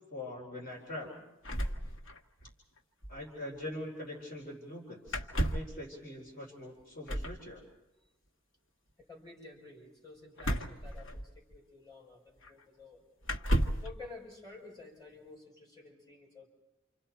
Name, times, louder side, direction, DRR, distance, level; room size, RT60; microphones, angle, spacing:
voice 1, 0.1-1.2 3.1-5.2 5.5-7.6, left 1 dB, 50° left, -2 dB, 3.9 m, -43 dB
sound 1, 1.4-2.5 2.8-2.9 3.0-3.2 5.1-5.8 7.1-7.4 10.4-11.6 12.4-12.5 13.2-13.9, equal, 80° left, 1.5 m, -33 dB
voice 2, 9.0-13.0 13.8-16.5, left 3 dB, 20° left, -2 dB, 5.9 m, -51 dB
29.0 x 27.5 x 4.5 m, 0.95 s
head